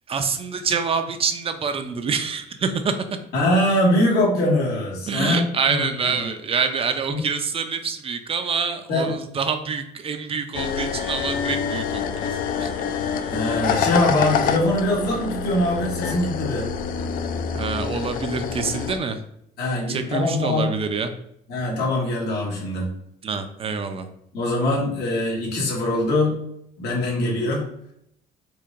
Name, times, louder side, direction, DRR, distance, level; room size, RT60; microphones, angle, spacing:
voice 1, 0.1-2.9 5.1-12.3 12.6-12.7 17.5-19.2 19.9-21.1 23.2-24.0, right 5 dB, 35° right, 8 dB, 0.4 m, -26 dB
voice 2, 3.3-6.3 7.1-7.2 8.9-9.2 13.3-16.7 19.6-20.7 21.5-22.9 24.3-26.4 26.8-27.7, left 1 dB, 75° left, -3 dB, 1.4 m, -23 dB
sound 1, 10.5-19.0, left 7 dB, 55° left, 0.4 m, -26 dB
4.6 x 2.5 x 2.5 m, 0.74 s
cardioid pair, 110°, 17 cm